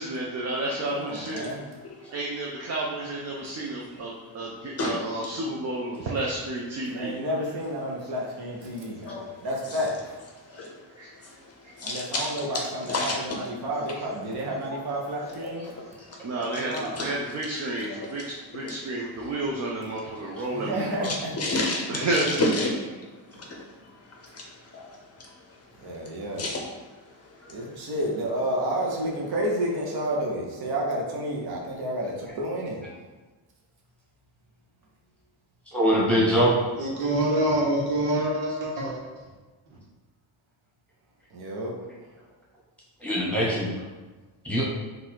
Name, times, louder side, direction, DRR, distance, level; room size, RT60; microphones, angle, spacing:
voice 1, 0.0-1.4 2.1-7.2 10.5-10.6 10.9-11.1 11.6-11.7 16.2-21.1 21.9-22.5, right 2 dB, 35° right, -3 dB, 0.6 m, -31 dB
voice 2, 0.9-1.6 6.9-10.2 11.8-15.7 16.4-17.0 20.5-21.3 23.4-23.5 25.8-26.5 27.5-32.8 41.3-41.8, right 1 dB, 50° right, -2 dB, 1.1 m, -30 dB
voice 3, 11.8-12.3 12.9-13.4 15.4-16.2 16.9-17.1 17.9-18.0 18.6-18.7 21.0-21.8 22.1-22.7 23.3-23.7 24.1-25.0 25.2-25.3 26.4-26.6, left 2 dB, 30° left, 0 dB, 0.7 m, -30 dB
voice 4, 14.7-15.0 35.7-36.6 43.0-43.7 44.4-44.6, equal, 5° left, -7 dB, 1.3 m, -23 dB
voice 5, 36.8-39.0, right 1 dB, 90° right, -3 dB, 1.3 m, -25 dB
4.0 x 2.6 x 4.5 m, 1.3 s
cardioid pair, 125°, 48 cm